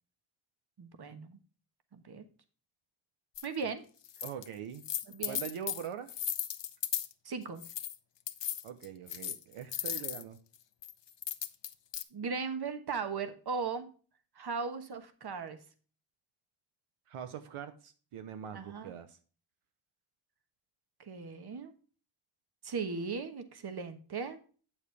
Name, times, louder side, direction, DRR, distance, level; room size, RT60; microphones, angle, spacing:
voice 1, 0.8-1.4 1.9-2.2 3.4-3.8 5.1-5.5 7.2-7.6 12.1-13.9 14.3-15.6 18.5-18.9 21.0-21.7 22.6-24.4, right 5 dB, 50° right, 9 dB, 1.4 m, -37 dB
sound 1, 3.4-3.5 4.0-4.5 4.7-7.1 7.6-8.0 8.3-10.2 10.8-12.0, left 10 dB, 55° left, 0.9 m, -36 dB
voice 2, 4.2-4.8 5.3-6.1 8.6-10.4 17.1-19.2, right 8 dB, 85° right, 9 dB, 0.9 m, -43 dB
8.7 x 7.2 x 3.4 m, 0.39 s
wide cardioid pair, 105°, 50 cm